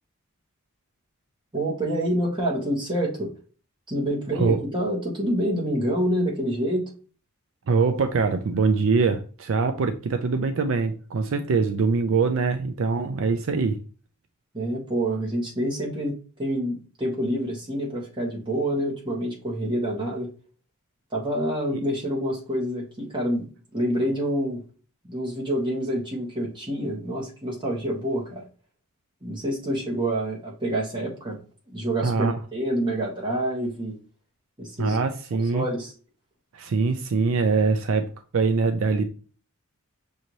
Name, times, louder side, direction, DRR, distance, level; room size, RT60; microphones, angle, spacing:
voice 1, 1.5-3.3 3.9-6.9 14.5-20.3 21.1-23.5 23.7-24.6 25.1-28.4 29.2-31.4 31.7-33.9 34.6-35.0 35.3-35.9, right 1 dB, 20° right, 1.4 m, -27 dB
voice 2, 7.7-13.8 21.7-21.8 32.0-32.3 34.8-35.7 36.5-39.0, right 4 dB, 65° right, 0.4 m, -23 dB
6.3 x 2.6 x 3.0 m
head